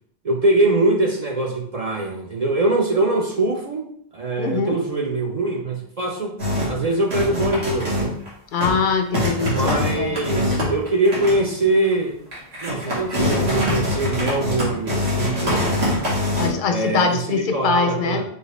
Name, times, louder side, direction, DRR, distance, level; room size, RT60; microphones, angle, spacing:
voice 1, 0.2-6.4 6.7-8.2 9.4-12.2 12.6-15.8 16.7-18.2, right 2 dB, 50° right, 1 dB, 0.5 m, -23 dB
voice 2, 4.4-4.8 8.5-10.2 16.4-18.2, left 5 dB, 60° left, 6 dB, 0.6 m, -22 dB
sound 1, 6.4-6.8 7.1-8.3 8.6-8.8 9.1-11.5 11.8-11.9 12.3-16.5, left 1 dB, 80° right, 1.7 m, -23 dB
5.2 x 2.5 x 3.1 m, 0.65 s
omnidirectional pair, 1.1 m